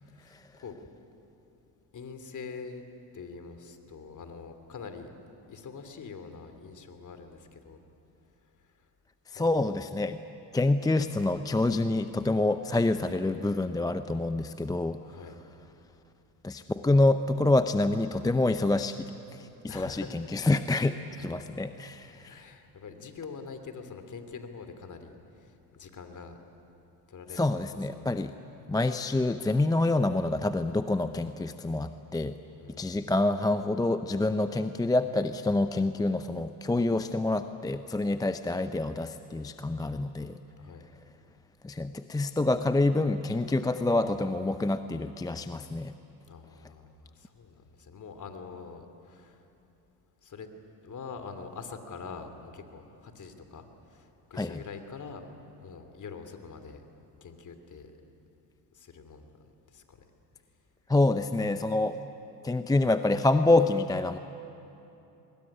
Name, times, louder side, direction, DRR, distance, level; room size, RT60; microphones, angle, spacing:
voice 1, 0.1-0.9 1.9-2.8 3.1-5.1 5.5-7.8 9.3-9.6 15.0-15.4 19.7-20.2 21.2-21.3 22.1-26.4 27.1-28.1 32.6-33.0 40.6-40.9 46.3-49.4 50.2-50.5 50.8-55.2 55.6-56.8 57.2-57.9 58.7-60.1, left 5 dB, 35° left, 8 dB, 2.9 m, -45 dB
voice 2, 9.3-10.2 10.5-15.0 16.4-19.0 19.3-22.4 27.3-28.3 28.7-32.4 32.8-40.4 41.6-45.9 54.3-54.6 60.9-62.0 62.4-64.2, left 2 dB, 10° left, 10 dB, 0.6 m, -27 dB
22.5 x 21.0 x 10.0 m, 2.9 s
supercardioid pair, 80°, 49 cm